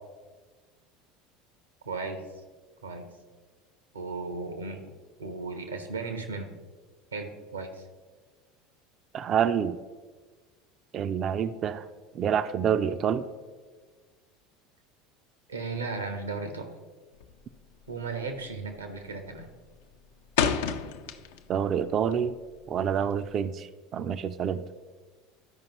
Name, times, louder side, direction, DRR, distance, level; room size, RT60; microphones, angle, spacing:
voice 1, 1.8-2.2 2.8-3.0 3.9-4.8 5.2-6.5 7.1-7.8 15.5-16.7 17.9-19.5, right 4 dB, 85° right, 6 dB, 1.0 m, -35 dB
voice 2, 9.1-9.8 10.9-11.9 12.1-13.3 21.5-22.4 22.7-24.7, right 8 dB, 40° right, 12 dB, 0.4 m, -27 dB
sound 1, 17.1-17.5 17.8-18.2 18.5-19.0 19.3-21.6 21.9-23.4, left 7 dB, 65° left, 0.5 m, -30 dB
12.5 x 5.1 x 3.0 m, 1.4 s
figure-of-eight pair, 75°, 0 cm